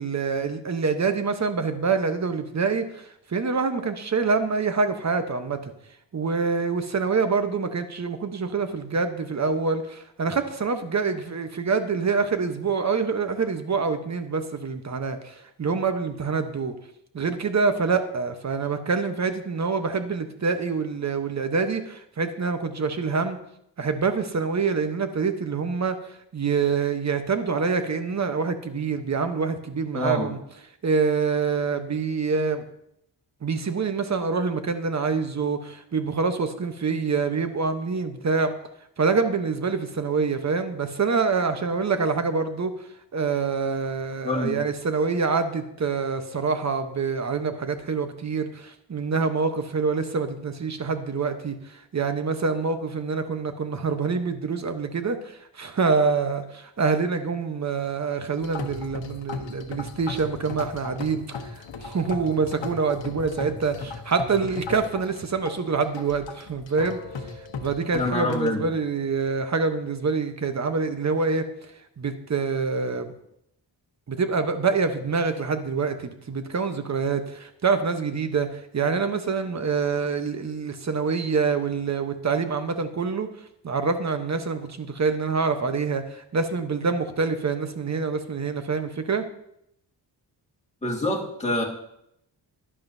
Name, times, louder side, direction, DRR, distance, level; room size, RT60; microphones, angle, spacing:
voice 1, 0.0-5.6 6.1-16.7 17.1-23.4 23.8-26.0 26.3-30.4 30.8-32.6 33.4-38.5 39.0-42.7 43.1-67.0 67.6-71.4 72.0-73.1 74.1-83.3 83.6-89.2, right 4 dB, 40° right, 8 dB, 0.9 m, -26 dB
voice 2, 29.9-30.3 44.2-44.6 67.9-68.7 90.8-91.6, left 1 dB, 15° left, -1 dB, 1.9 m, -26 dB
sound 1, 58.4-68.5, left 4 dB, 90° left, 1.1 m, -37 dB
11.5 x 11.0 x 2.7 m, 0.77 s
wide cardioid pair, 115°, 44 cm